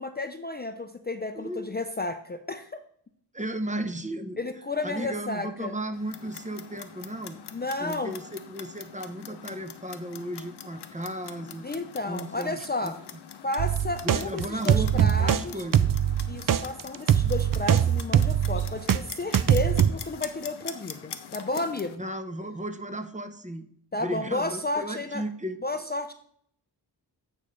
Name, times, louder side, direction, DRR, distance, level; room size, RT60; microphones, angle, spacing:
voice 1, 0.0-2.8 4.4-5.7 7.5-8.1 11.6-13.0 13.4-15.6 16.3-22.0 23.9-25.2 25.6-26.1, left 2 dB, 25° left, 8 dB, 0.4 m, -32 dB
voice 2, 1.3-1.7 3.3-4.4 4.8-7.4 7.8-11.7 12.1-12.6 12.8-12.9 14.0-16.0 22.0-23.7 24.0-25.6, right 1 dB, 20° right, 8 dB, 0.7 m, -35 dB
Clock, 5.9-22.0, left 8 dB, 70° left, 0.7 m, -43 dB
sound 1, 13.6-19.0 19.3-19.9, right 9 dB, 55° right, 0.5 m, -22 dB
8.9 x 5.3 x 3.2 m, 0.64 s
cardioid pair, 60°, 41 cm